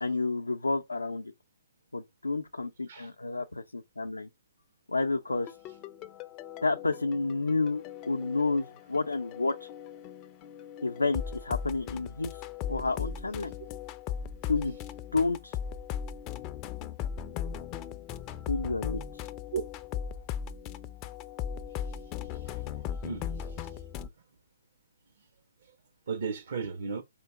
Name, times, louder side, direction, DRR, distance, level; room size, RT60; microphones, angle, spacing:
voice 1, 0.0-1.3 1.9-4.3 4.9-5.6 6.6-9.7 10.8-13.5 14.5-14.8 15.1-15.6 18.5-19.2, left 3 dB, 85° left, 0.4 m, -30 dB
sound 1, 5.3-24.1, left 8 dB, 25° left, 0.4 m, -38 dB
voice 2, 22.3-22.6 23.0-23.6 26.1-27.0, right 6 dB, 60° right, 0.6 m, -35 dB
4.4 x 2.7 x 3.5 m
figure-of-eight pair, 135°, 0 cm